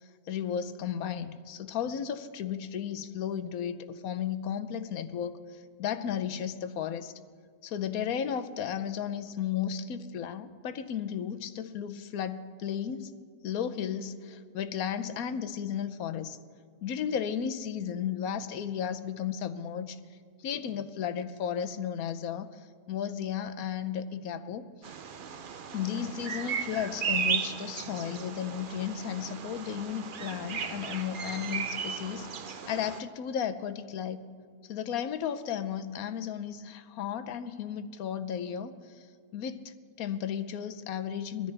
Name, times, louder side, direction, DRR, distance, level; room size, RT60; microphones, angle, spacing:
voice 1, 0.3-7.1 7.6-13.1 13.4-16.4 16.8-20.0 20.4-22.5 22.9-24.6 25.7-34.3 34.6-38.7 39.3-41.5, left 8 dB, 65° left, 10 dB, 1.1 m, -34 dB
Bird vocalization bird call bird song, 24.8-33.0, right 6 dB, 80° right, 0.4 m, -35 dB
21.5 x 13.5 x 3.4 m, 2.2 s
omnidirectional pair, 1.7 m